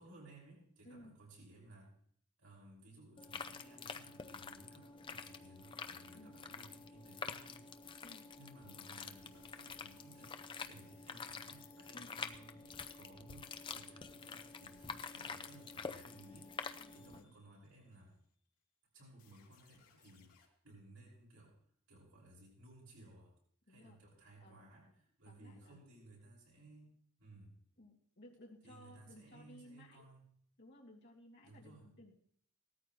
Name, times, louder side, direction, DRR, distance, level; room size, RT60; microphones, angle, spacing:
voice 1, 0.0-1.9 2.4-8.1 8.4-18.1 18.9-21.5 21.9-23.3 23.7-26.9 27.2-27.6 28.6-30.2 31.4-31.9, right 1 dB, 80° right, -4 dB, 5.4 m, -59 dB
voice 2, 0.8-1.2 6.1-6.4 8.0-8.3 11.9-12.2 16.8-17.3 23.7-24.0 24.4-24.7 25.2-25.8 27.8-30.0 30.6-32.1, left 1 dB, 50° left, -3 dB, 2.4 m, -58 dB
sound 1, 3.2-17.2, left 5 dB, 20° left, 0.5 m, -48 dB
sound 2, 9.3-13.5 14.2-18.5 19.2-20.5, left 8 dB, 80° left, 2.8 m, -70 dB
17.5 x 13.5 x 3.1 m, 0.63 s
head